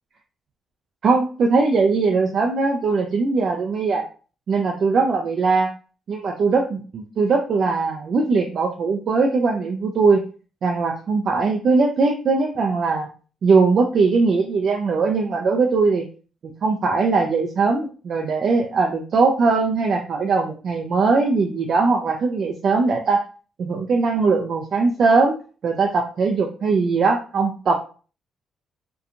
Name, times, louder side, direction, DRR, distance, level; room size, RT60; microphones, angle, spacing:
voice 1, 1.0-4.0 4.5-5.7 6.1-10.2 10.6-13.1 13.4-16.1 16.4-23.2 23.6-25.4 25.6-27.7, right 4 dB, 55° right, 1 dB, 0.4 m, -20 dB
2.8 x 2.2 x 2.5 m, 0.38 s
cardioid pair, 90°, 0 cm